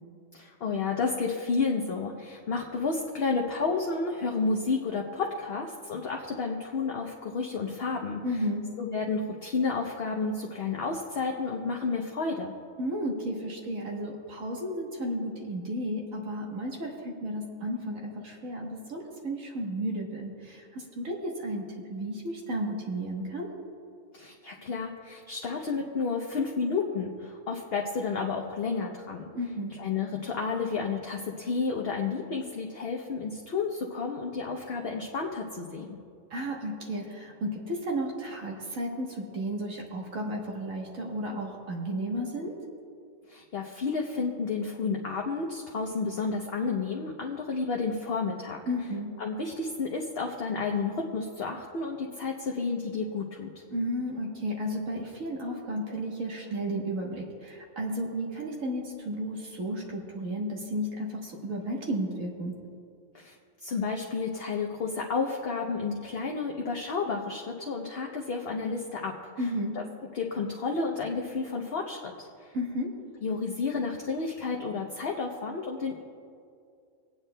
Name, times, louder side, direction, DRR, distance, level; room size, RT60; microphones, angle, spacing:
voice 1, 0.3-8.2 8.8-12.5 24.1-29.3 29.8-36.0 43.3-48.6 49.2-53.6 63.1-63.3 63.6-69.5 69.8-69.9 70.1-72.5 73.2-76.0, left 4 dB, 55° left, 0 dB, 0.9 m, -31 dB
voice 2, 8.2-8.7 12.8-21.6 21.9-23.5 29.3-29.8 36.3-42.5 48.7-49.1 53.7-62.6 69.4-69.8 72.5-72.9, equal, 80° right, -1 dB, 1.7 m, -33 dB
25.0 x 9.0 x 2.2 m, 2.3 s
omnidirectional pair, 1.4 m